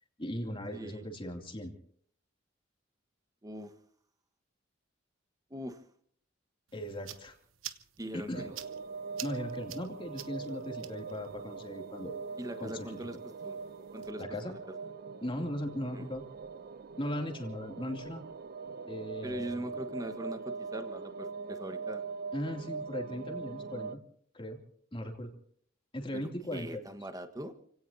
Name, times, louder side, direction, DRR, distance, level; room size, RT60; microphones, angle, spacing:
voice 1, 0.2-1.7 6.7-7.4 8.1-8.5 9.2-12.2 12.6-13.2 14.2-14.5 15.2-16.2 17.0-18.2 18.8-19.5 22.3-24.0 24.3-24.6 24.9-25.3 25.9-26.8, equal, 25° left, 3 dB, 2.8 m, -38 dB
voice 2, 0.7-1.0 3.4-3.7 5.5-5.8 8.0-8.5 12.4-13.2 13.4-13.6 13.9-14.7 15.9-16.1 19.2-22.0 26.1-26.2 26.5-27.5, right 1 dB, 20° right, 8 dB, 1.4 m, -41 dB
sound 1, 6.7-14.1, right 12 dB, 80° right, 1.1 m, -50 dB
sound 2, 8.3-24.0, right 5 dB, 50° right, 0.6 m, -42 dB
29.0 x 17.5 x 2.8 m, 0.63 s
head